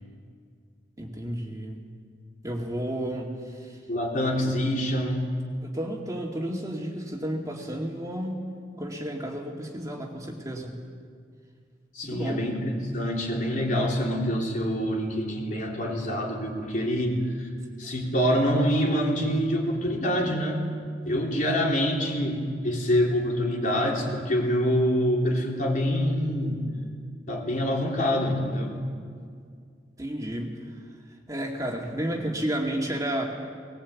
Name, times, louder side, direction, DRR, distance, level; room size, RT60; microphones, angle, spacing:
voice 1, 1.0-1.8 2.4-3.8 5.6-8.4 8.8-10.8 12.0-12.5 30.0-30.5 31.3-33.3, right 1 dB, 20° right, 0 dB, 2.3 m, -32 dB
voice 2, 3.9-5.4 12.0-17.5 17.8-20.6 21.1-26.6 27.3-28.8, equal, 50° left, -1 dB, 3.6 m, -26 dB
20.0 x 19.5 x 8.4 m, 2.1 s
head